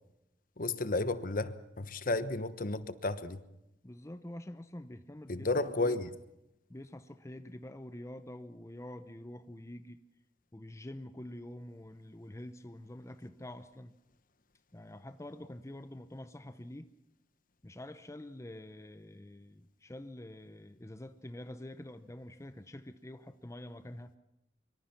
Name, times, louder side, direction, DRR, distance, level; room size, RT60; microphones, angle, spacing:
voice 1, 0.6-3.4 5.3-6.1, left 2 dB, 50° left, 1.2 m, -32 dB
voice 2, 3.8-6.0 6.7-10.0 10.5-14.0 14.7-16.9 17.6-24.1, left 1 dB, 15° left, 0.8 m, -46 dB
24.5 x 24.5 x 5.9 m
head